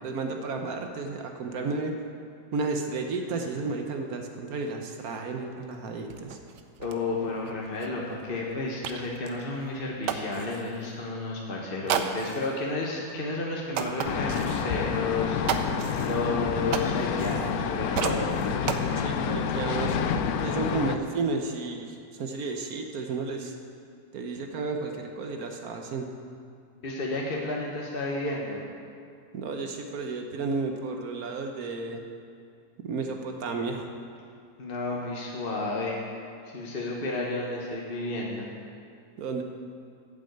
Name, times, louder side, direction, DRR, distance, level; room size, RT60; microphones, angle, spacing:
voice 1, 0.0-1.9 2.5-6.4 19.0-20.0 20.4-23.5 24.1-26.1 29.3-32.0 32.8-33.8 39.2-39.4, right 3 dB, 65° right, 4 dB, 1.2 m, -32 dB
sound 1, 5.7-5.8 6.1-10.8 11.9-12.6 13.1-13.2 13.7-14.7 15.5-17.7 17.9-18.8, right 8 dB, 85° right, 1.3 m, -34 dB
voice 2, 6.8-15.4 16.0-18.3 26.8-28.6 34.6-36.0 36.4-38.5, left 2 dB, 35° left, -2 dB, 1.2 m, -32 dB
sound 2, 14.0-21.0, left 6 dB, 70° left, 1.0 m, -28 dB
8.8 x 7.7 x 7.9 m, 2.3 s
omnidirectional pair, 1.8 m